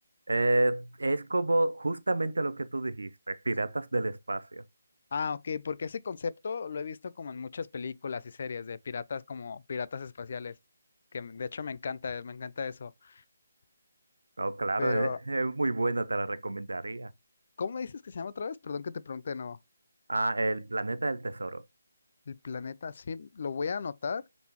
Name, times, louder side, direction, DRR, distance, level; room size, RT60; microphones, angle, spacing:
voice 1, 0.3-4.6 14.4-17.1 20.1-21.6, right 2 dB, 85° right, 0.4 m, -29 dB
voice 2, 5.1-10.5 11.1-13.2 14.8-15.2 17.6-19.6 22.3-24.2, left 5 dB, 50° left, 0.3 m, -36 dB
3.9 x 3.5 x 2.9 m
figure-of-eight pair, 155°, 0 cm